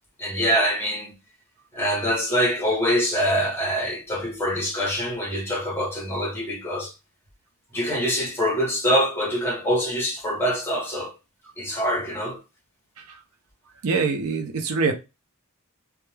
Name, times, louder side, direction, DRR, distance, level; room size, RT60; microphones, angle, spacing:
voice 1, 0.2-1.1 1.7-6.9 7.7-11.1 11.6-12.4, equal, 10° left, 0.8 m, -24 dB
voice 2, 13.8-14.9, right 4 dB, 75° right, 0.5 m, -23 dB
2.2 x 2.2 x 3.1 m
head